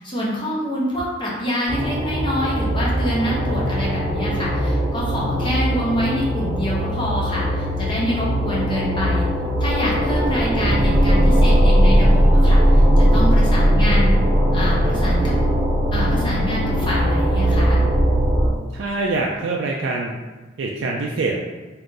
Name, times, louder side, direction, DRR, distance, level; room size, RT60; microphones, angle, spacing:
voice 1, 0.0-9.3 9.6-14.2 14.5-15.3 15.9-17.8, equal, 25° left, -5 dB, 0.6 m, -26 dB
sound 1, 1.7-18.5, equal, 15° right, 0.7 m, -18 dB
voice 2, 18.7-20.1 20.6-21.4, right 3 dB, 65° right, -1 dB, 0.3 m, -24 dB
2.6 x 2.4 x 3.7 m, 1.3 s
head